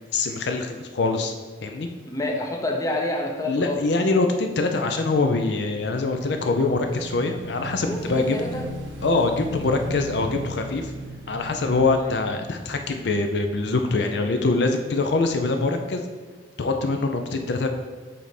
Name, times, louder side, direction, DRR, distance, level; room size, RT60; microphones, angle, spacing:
voice 1, 0.0-1.3 1.6-1.9 3.5-8.4 9.0-10.9 11.3-16.0 16.6-17.7, left 3 dB, 65° left, 5 dB, 0.5 m, -24 dB
voice 2, 2.1-3.8 7.8-8.7 11.9-12.1, left 1 dB, 20° left, 1 dB, 0.6 m, -28 dB
Motorcycle / Engine, 5.6-13.8, right 1 dB, 90° right, 1.1 m, -37 dB
7.6 x 3.4 x 4.1 m, 1.4 s
head